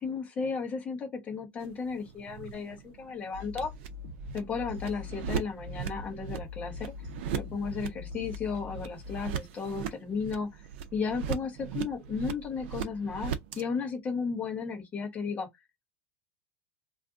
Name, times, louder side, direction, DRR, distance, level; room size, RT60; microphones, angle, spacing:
voice 1, 0.0-3.7 4.3-6.9 7.3-10.6 10.9-15.5, left 5 dB, 20° left, 0.8 m, -34 dB
sound 1, 1.6-13.6, right 8 dB, 60° right, 0.5 m, -39 dB
sound 2, 3.3-9.2, left 5 dB, 40° right, 1.1 m, -43 dB
2.5 x 2.4 x 3.5 m
supercardioid pair, 175°, 7 cm